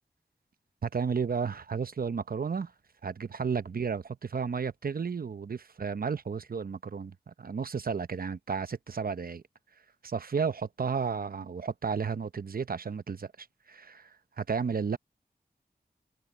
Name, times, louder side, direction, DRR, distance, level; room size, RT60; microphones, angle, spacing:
voice 1, 0.8-2.7 3.0-9.4 10.0-15.0, right 6 dB, 65° right, 0.8 m, -33 dB
wide cardioid pair, 60°, 17 cm